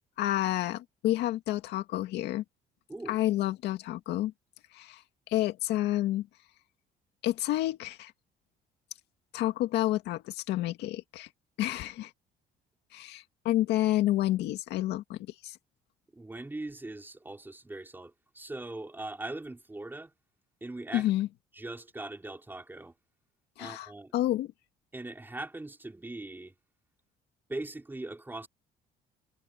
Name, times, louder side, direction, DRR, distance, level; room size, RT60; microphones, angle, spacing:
voice 1, 0.0-2.4 3.1-4.3 4.7-5.0 5.3-6.3 7.2-8.1 9.3-11.3 11.6-12.1 12.9-15.6 20.9-21.3 23.6-24.5, left 14 dB, 80° left, 2.2 m, -29 dB
voice 2, 16.1-20.1 20.6-21.1 21.5-22.9 23.6-24.1 24.9-26.5 27.5-28.5, right 2 dB, 10° right, 4.2 m, -40 dB
cardioid pair, 110°, 17 cm